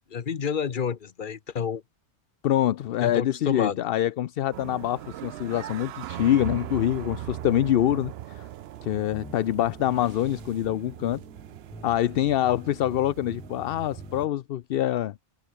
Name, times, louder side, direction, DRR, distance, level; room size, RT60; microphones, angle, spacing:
voice 1, 0.0-1.8 3.0-3.9, left 7 dB, 50° left, 1.1 m, -29 dB
voice 2, 2.4-8.4 8.8-11.2 11.8-15.1, left 12 dB, 65° left, 0.7 m, -25 dB
sound 1, 4.5-14.3, right 12 dB, 65° right, 0.8 m, -40 dB
sound 2, 9.1-14.4, left 1 dB, 5° left, 2.3 m, -45 dB
omnidirectional pair, 1.2 m